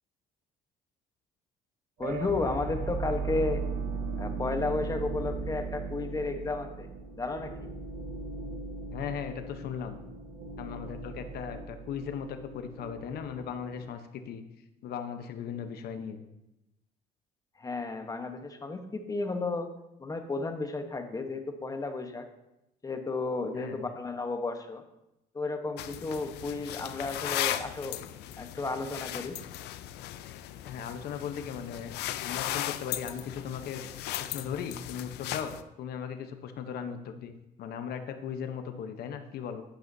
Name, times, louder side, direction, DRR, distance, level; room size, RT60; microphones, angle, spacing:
voice 1, 2.0-3.7 4.2-6.9 7.2-7.7 17.6-19.7 20.0-22.3 22.8-24.8 25.3-28.0 28.4-29.4, left 3 dB, 20° left, 6 dB, 1.1 m, -33 dB
sound 1, 2.0-13.9, right 4 dB, 55° right, 1.3 m, -37 dB
voice 2, 8.9-10.0 10.6-14.4 14.8-16.2 23.5-23.9 30.6-31.9 32.2-33.8 34.2-39.6, left 7 dB, 65° left, 7 dB, 0.9 m, -38 dB
sound 2, 25.8-35.6, left 13 dB, 85° left, 0.5 m, -37 dB
11.5 x 9.3 x 2.7 m, 0.88 s
cardioid pair, 110°, 17 cm